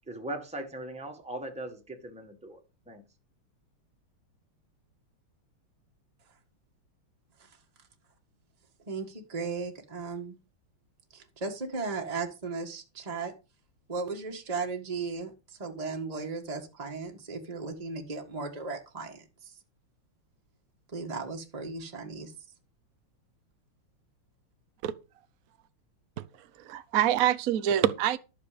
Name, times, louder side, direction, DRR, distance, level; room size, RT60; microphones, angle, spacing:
voice 1, 0.1-2.6 2.9-3.0, right 1 dB, 5° right, 1.7 m, -39 dB
voice 2, 8.9-10.4 11.1-13.3 13.9-19.5 20.9-22.3, right 4 dB, 20° right, 1.7 m, -36 dB
voice 3, 26.6-28.2, right 11 dB, 60° right, 0.9 m, -25 dB
12.0 x 6.9 x 5.1 m
omnidirectional pair, 2.4 m